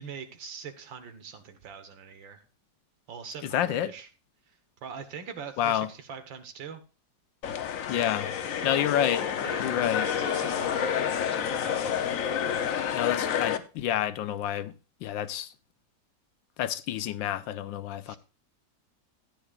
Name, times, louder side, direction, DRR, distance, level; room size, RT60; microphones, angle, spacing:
voice 1, 0.0-2.4 3.1-4.1 4.5-4.6 4.8-6.8 8.4-8.9 9.4-11.0 11.2-12.0 18.1-18.2, right 6 dB, 85° right, 1.9 m, -43 dB
voice 2, 3.5-3.9 5.6-5.9 7.9-8.3 8.6-9.2 9.6-10.1 12.9-14.7 15.0-15.5 16.6-18.2, left 11 dB, 85° left, 1.4 m, -28 dB
sound 1, 7.4-13.6, left 8 dB, 60° left, 1.0 m, -29 dB
15.0 x 9.1 x 2.4 m
omnidirectional pair, 2.0 m